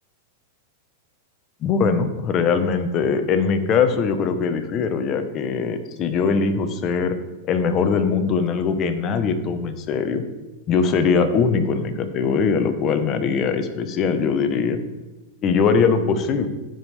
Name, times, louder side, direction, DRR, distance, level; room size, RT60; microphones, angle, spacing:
voice 1, 1.6-7.1 7.5-10.2 10.7-14.8 15.4-16.5, left 5 dB, 35° left, 8 dB, 0.9 m, -21 dB
14.5 x 5.3 x 3.3 m, 1.1 s
hypercardioid pair, 125°, 0 cm